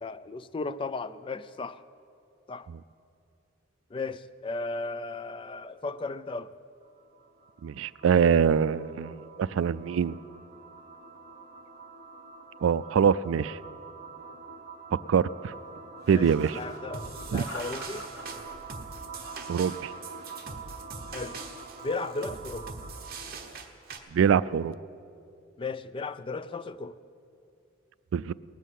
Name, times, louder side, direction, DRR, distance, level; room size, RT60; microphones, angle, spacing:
voice 1, 0.0-1.8 2.5-2.7 3.9-6.5 16.1-18.1 21.1-21.4 21.8-22.7 25.6-27.0, left 3 dB, 25° left, 14 dB, 0.3 m, -35 dB
sound 1, 6.8-23.5, right 4 dB, 25° right, 1.4 m, -46 dB
voice 2, 7.6-9.2 9.6-10.1 12.6-13.6 15.1-15.5 16.1-16.6 17.3-17.4 19.5-19.9 24.1-24.7 28.1-28.3, right 7 dB, 75° right, 18 dB, 0.3 m, -24 dB
sound 2, 16.0-16.8 17.4-18.3 18.9-19.5 19.9-20.5, left 1 dB, 55° left, 3.0 m, -44 dB
sound 3, 16.9-24.0, right 4 dB, 45° right, 1.0 m, -43 dB
18.5 x 7.4 x 8.2 m, 2.5 s
head